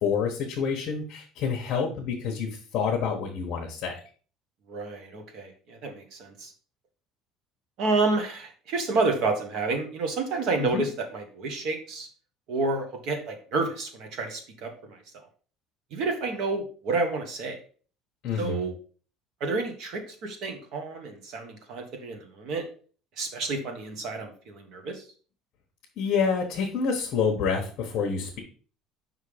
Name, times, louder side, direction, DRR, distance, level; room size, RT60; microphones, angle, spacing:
voice 1, 0.0-4.0 10.6-10.8 18.2-18.7 26.0-28.4, left 6 dB, 45° left, -1 dB, 1.1 m, -28 dB
voice 2, 4.7-6.5 7.8-12.1 12.5-15.0 15.9-17.6 18.4-18.7 19.4-22.6 23.2-25.0, right 3 dB, 50° right, 5 dB, 1.3 m, -30 dB
5.5 x 3.7 x 5.0 m, 0.41 s
cardioid pair, 175°, 0 cm